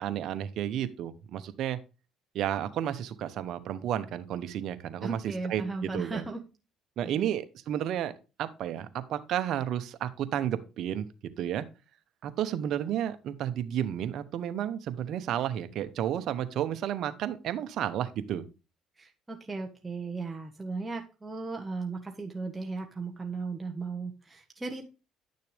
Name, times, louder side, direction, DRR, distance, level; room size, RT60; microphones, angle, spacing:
voice 1, 0.0-1.8 2.3-6.2 7.0-8.1 8.4-11.1 11.4-11.7 12.2-18.4, right 10 dB, 65° right, 10 dB, 0.9 m, -32 dB
voice 2, 5.0-6.4 7.0-7.3 19.0-24.9, right 3 dB, 15° right, 1 dB, 1.4 m, -36 dB
10.5 x 6.6 x 3.4 m, 0.30 s
cardioid pair, 90°, 0 cm